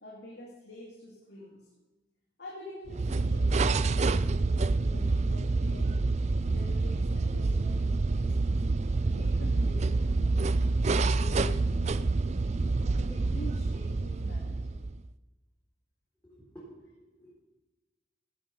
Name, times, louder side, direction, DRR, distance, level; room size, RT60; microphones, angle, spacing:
voice 1, 0.0-1.7 2.4-6.1 6.4-8.6 9.0-12.1 12.9-14.8, left 1 dB, 75° left, -3 dB, 2.8 m, -47 dB
sound 1, 2.9-15.1, right 3 dB, 40° right, 0.4 m, -27 dB
voice 2, 16.2-17.3, right 1 dB, 15° left, -7 dB, 3.9 m, -51 dB
16.5 x 10.0 x 5.6 m, 1.1 s
head